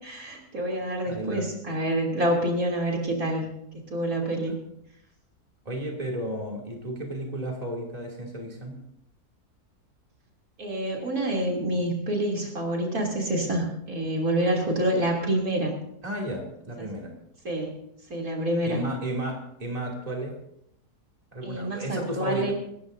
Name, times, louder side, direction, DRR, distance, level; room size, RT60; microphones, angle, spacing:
voice 1, 0.0-3.5 3.9-4.6 10.6-15.7 16.8-16.9 17.5-17.8 18.1-18.8 21.4-22.5, right 1 dB, 60° right, -1 dB, 3.5 m, -27 dB
voice 2, 1.0-1.5 5.6-8.7 16.0-17.1 18.7-20.3 21.3-22.5, right 1 dB, 25° right, -1 dB, 2.9 m, -33 dB
26.5 x 13.5 x 2.7 m, 0.75 s
omnidirectional pair, 1.7 m